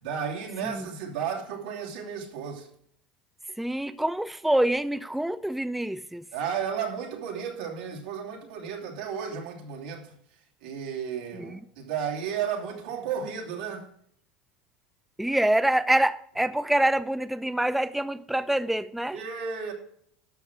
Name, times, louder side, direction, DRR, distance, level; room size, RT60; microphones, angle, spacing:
voice 1, 0.0-2.7 6.3-10.1 10.6-13.9 19.1-19.7, right 7 dB, 80° right, 2.9 m, -33 dB
voice 2, 3.6-6.2 11.3-11.6 15.2-19.2, right 1 dB, 5° right, 0.5 m, -26 dB
11.5 x 6.5 x 5.9 m
hypercardioid pair, 85°, 4 cm